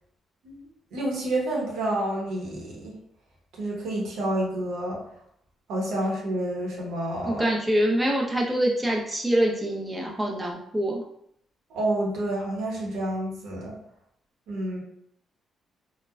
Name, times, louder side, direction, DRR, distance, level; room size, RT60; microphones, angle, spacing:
voice 1, 0.9-3.0 3.6-5.0 5.7-7.4 11.7-13.7 14.5-14.8, right 1 dB, 85° right, -3 dB, 0.9 m, -29 dB
voice 2, 7.2-11.0, right 1 dB, 10° right, -2 dB, 0.5 m, -25 dB
3.1 x 2.1 x 2.3 m, 0.71 s
cardioid pair, 90°, 0 cm